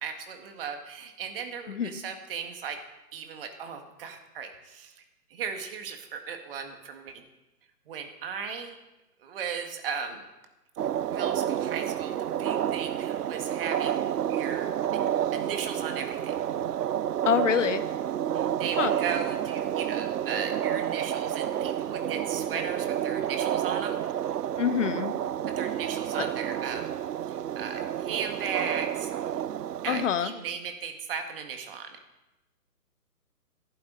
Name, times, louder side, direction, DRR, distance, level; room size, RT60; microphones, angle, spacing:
voice 1, 0.0-2.8 3.1-5.0 5.3-7.2 7.9-8.8 9.2-10.3 11.1-15.1 15.3-16.3 18.3-24.0 25.6-26.9 27.3-29.3 29.8-32.0, right 6 dB, 35° right, 5 dB, 1.8 m, -36 dB
sound 1, 10.8-30.1, right 10 dB, 80° right, 0.6 m, -30 dB
voice 2, 17.2-17.8 18.8-18.9 24.6-25.1 29.9-30.3, left 8 dB, 50° left, 11 dB, 1.2 m, -25 dB
18.0 x 12.0 x 4.0 m, 1.0 s
figure-of-eight pair, 140°, 47 cm